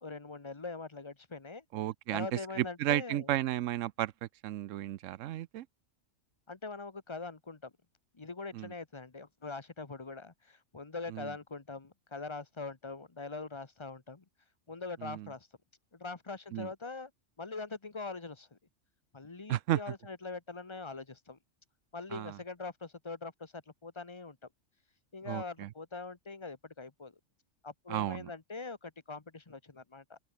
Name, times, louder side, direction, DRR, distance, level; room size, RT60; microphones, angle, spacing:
voice 1, 0.0-1.6 2.1-3.3 6.5-7.7 8.1-14.2 14.7-15.5 15.9-17.1 17.4-18.6 19.1-21.4 21.9-24.4 25.1-27.1 27.6-30.2, left 3 dB, 25° left, 1.2 m, -43 dB
voice 2, 1.7-5.7 8.5-8.7 11.1-11.3 15.0-15.3 16.5-16.7 19.5-19.8 22.1-22.4 25.3-25.7 27.9-28.3, right 13 dB, 80° right, 1.0 m, -33 dB
open air
omnidirectional pair, 1.3 m